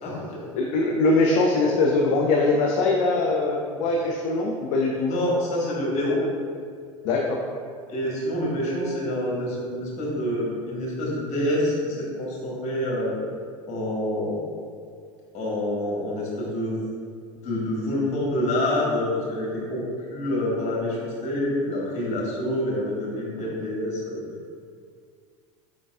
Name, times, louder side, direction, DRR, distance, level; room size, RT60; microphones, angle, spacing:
voice 1, 0.0-0.4 5.1-6.2 7.9-13.2 13.7-14.4 15.3-16.8 17.4-24.2, left 1 dB, 40° left, -5 dB, 1.5 m, -27 dB
voice 2, 0.5-5.1 7.0-7.4, left 3 dB, 60° left, -1 dB, 0.5 m, -22 dB
4.8 x 3.9 x 2.4 m, 2.2 s
figure-of-eight pair, 75°, 18 cm